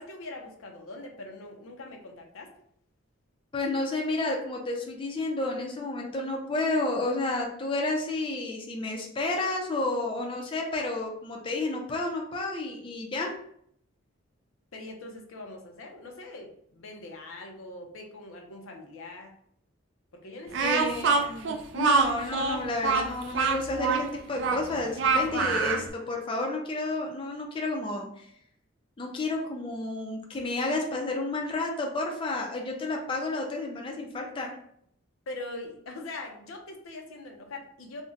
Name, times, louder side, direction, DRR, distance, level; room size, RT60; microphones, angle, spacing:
voice 1, 0.0-2.5 14.7-19.3 20.1-21.2 35.3-38.0, left 2 dB, 90° left, 2 dB, 0.6 m, -42 dB
voice 2, 3.5-13.4 20.6-28.3 29.0-34.5, left 2 dB, 25° left, 0 dB, 0.4 m, -31 dB
Speech, 20.5-25.9, right 4 dB, 60° right, 0.3 m, -25 dB
2.5 x 2.1 x 3.7 m, 0.68 s
head